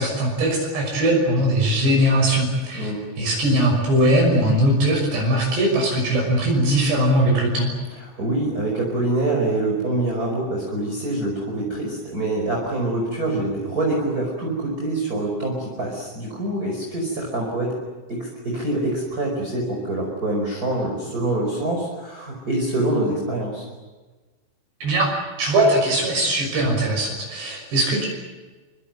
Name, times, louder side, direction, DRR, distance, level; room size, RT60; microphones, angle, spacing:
voice 1, 0.0-2.9 3.2-7.7 24.8-25.1 25.4-28.1, right 1 dB, 55° right, 0 dB, 8.1 m, -20 dB
voice 2, 8.2-17.7 18.1-23.6, right 2 dB, 20° right, -1 dB, 5.0 m, -25 dB
26.0 x 25.5 x 7.8 m, 1.3 s
omnidirectional pair, 5.8 m